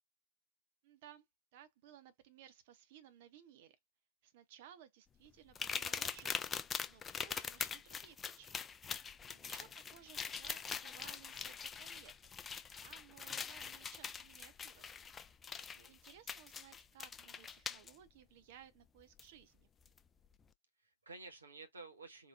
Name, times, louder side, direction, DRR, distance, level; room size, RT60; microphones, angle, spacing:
voice 1, 0.8-1.2 1.5-3.8 4.2-8.6 9.4-12.5 12.8-14.9 15.7-19.7, right 10 dB, 50° right, 0.6 m, -60 dB
sound 1, 5.5-17.9 19.2-19.3 19.8-20.0, left 6 dB, 20° left, 0.3 m, -43 dB
voice 2, 9.2-9.7 15.5-16.0 20.8-22.3, right 3 dB, 75° right, 1.0 m, -54 dB
3.8 x 2.2 x 2.3 m
figure-of-eight pair, 90°, 0 cm